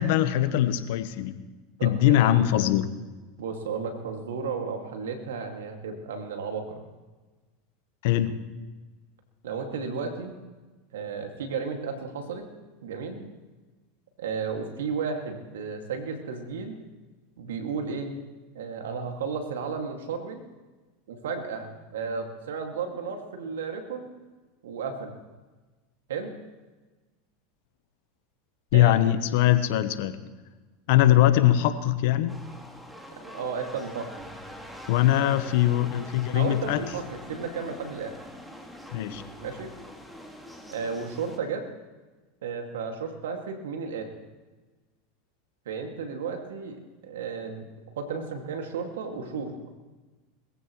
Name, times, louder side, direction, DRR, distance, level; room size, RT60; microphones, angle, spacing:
voice 1, 0.0-1.4 1.8-2.9 8.0-8.3 28.7-30.2 30.9-32.4 34.9-36.8 38.9-39.2, left 13 dB, 65° left, 12 dB, 1.1 m, -22 dB
voice 2, 1.8-2.3 3.4-6.9 9.4-10.4 10.9-12.4 12.8-13.3 14.2-16.8 17.4-18.2 18.5-20.4 21.1-24.1 24.6-25.2 26.1-26.3 28.7-29.0 33.1-34.1 36.3-38.1 39.4-39.7 40.7-41.6 42.4-44.1 45.7-46.8 47.0-47.7 48.0-49.7, right 5 dB, 80° right, 4 dB, 2.3 m, -33 dB
sound 1, 32.3-41.4, equal, ahead, 2.1 m, -44 dB
21.0 x 15.0 x 3.2 m, 1.2 s
hypercardioid pair, 95°, 0 cm